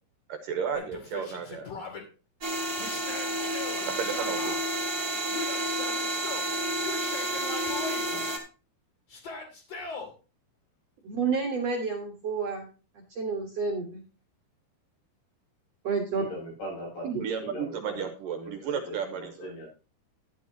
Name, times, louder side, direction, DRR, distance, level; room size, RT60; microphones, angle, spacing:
voice 1, 0.3-1.7 3.9-4.6 17.1-19.5, right 7 dB, 70° right, 5 dB, 2.3 m, -33 dB
Yell, 0.7-2.0 2.8-4.6 5.3-6.5 6.8-8.1 9.1-10.1, left 4 dB, 40° left, 3.3 m, -39 dB
sound 1, 2.4-8.4, right 1 dB, 20° right, 2.4 m, -30 dB
voice 2, 11.0-12.7 13.0-14.0 15.8-16.2 17.0-17.2, right 5 dB, 55° right, 2 dB, 2.0 m, -30 dB
voice 3, 16.1-19.7, equal, 70° left, -2 dB, 9.1 m, -40 dB
12.0 x 11.0 x 2.9 m, 0.33 s
omnidirectional pair, 4.7 m